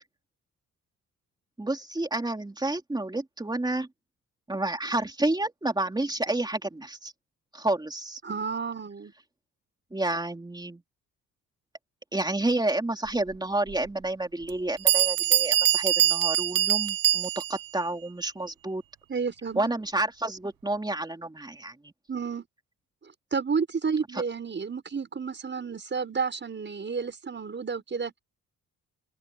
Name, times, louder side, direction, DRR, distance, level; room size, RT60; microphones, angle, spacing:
voice 1, 1.6-3.9 4.5-7.1 7.5-8.2 9.9-10.8 12.1-18.8 19.5-21.9 24.1-24.2, right 2 dB, 10° right, 3.1 m, -30 dB
voice 2, 8.2-9.1 19.1-19.7 22.1-22.5 23.3-28.2, right 5 dB, 35° right, 6.4 m, -31 dB
Bell, 13.7-13.8 14.5-14.6 14.9-17.7, right 12 dB, 85° right, 0.9 m, -23 dB
cardioid pair, 115°, 33 cm